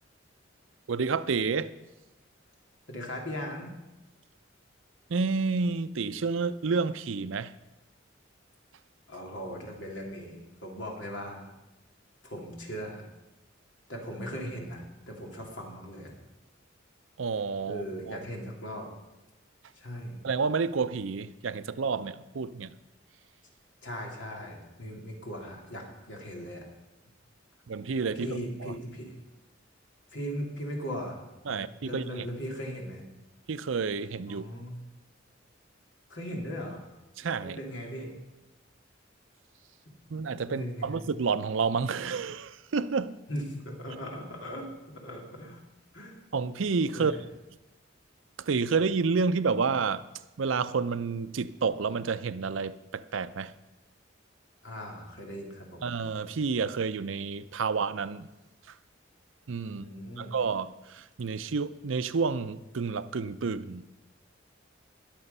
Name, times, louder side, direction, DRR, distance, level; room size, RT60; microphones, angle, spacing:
voice 1, 0.9-1.7 5.1-7.5 17.2-18.2 20.2-22.8 24.9-25.0 27.7-28.7 31.5-32.3 33.5-34.4 37.2-37.6 40.1-43.1 46.3-47.1 48.4-50.0 50.4-53.5 55.8-58.3 58.7-58.8 59.5-59.8 60.2-63.8, right 5 dB, 85° right, 0.6 m, -30 dB
voice 2, 2.9-3.7 9.1-11.5 12.2-13.0 13.9-16.1 17.7-18.9 19.7-20.2 23.8-26.7 28.1-29.1 30.1-31.2 31.5-33.0 34.3-34.8 36.1-36.8 37.4-38.1 40.5-41.0 43.3-45.6 45.9-46.2 46.9-47.2 54.6-55.8 59.7-60.4, equal, 70° left, 2.9 m, -38 dB
20.5 x 6.9 x 5.5 m
head